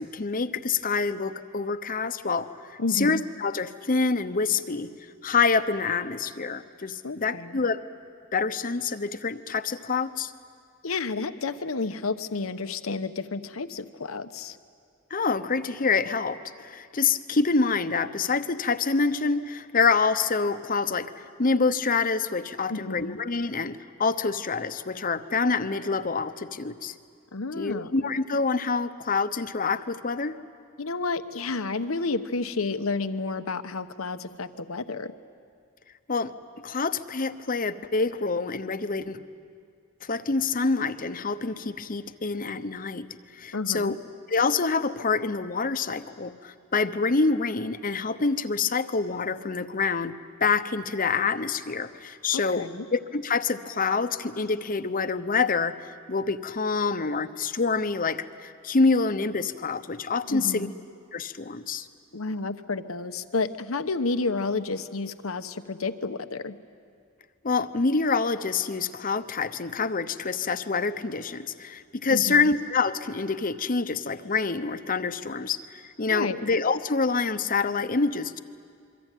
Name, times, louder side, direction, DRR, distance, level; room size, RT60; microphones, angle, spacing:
voice 1, 0.0-4.9 5.2-7.9 8.3-10.3 15.1-26.9 27.6-30.4 36.1-36.3 36.6-39.2 40.0-43.1 43.3-44.0 44.3-50.1 50.4-52.6 52.9-60.7 61.1-61.9 67.4-78.4, left 4 dB, 40° left, 11 dB, 0.9 m, -26 dB
voice 2, 2.8-3.2 7.0-7.6 10.8-14.6 22.7-23.2 27.3-27.9 30.8-35.1 43.5-44.0 52.3-52.9 60.3-60.7 62.1-66.6 72.1-72.5 76.1-76.4, left 3 dB, 90° left, 10 dB, 1.0 m, -31 dB
27.5 x 23.5 x 9.2 m, 2.3 s
head